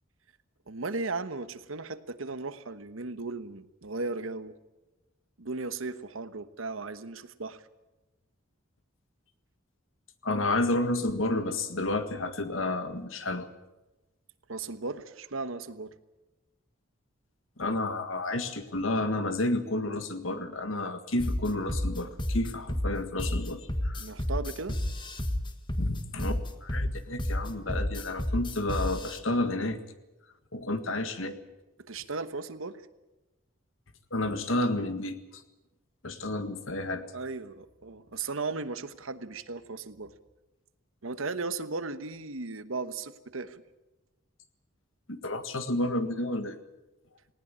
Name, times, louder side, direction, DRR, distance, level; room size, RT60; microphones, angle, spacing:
voice 1, 0.7-4.5 5.4-7.6 14.5-15.9 24.0-24.8 31.9-32.8 37.1-40.1 41.0-43.6, right 3 dB, 85° right, 12 dB, 1.2 m, -36 dB
voice 2, 10.2-13.5 17.6-24.0 25.8-29.8 30.5-31.4 34.1-35.2 36.0-37.0 45.1-46.6, left 2 dB, 75° left, 10 dB, 1.8 m, -30 dB
sound 1, 21.2-29.2, left 1 dB, 25° left, 1.5 m, -31 dB
19.0 x 18.0 x 8.7 m, 1.0 s
head